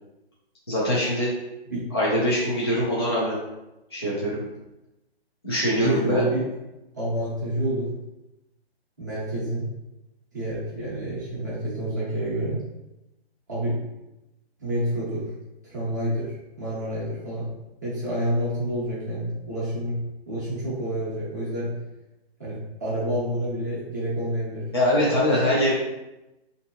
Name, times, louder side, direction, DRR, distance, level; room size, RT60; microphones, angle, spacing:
voice 1, 0.7-1.3 1.9-3.4 3.9-4.4 5.4-6.2 24.7-25.7, equal, 25° left, -8 dB, 0.5 m, -23 dB
voice 2, 5.7-6.5 6.9-7.9 9.0-9.7 10.3-12.6 13.5-13.8 14.6-15.3 15.6-17.5 17.8-20.0 20.3-21.7 22.4-24.7, right 1 dB, 20° right, -9 dB, 0.6 m, -28 dB
3.1 x 2.7 x 2.7 m, 0.96 s
hypercardioid pair, 175°, 32 cm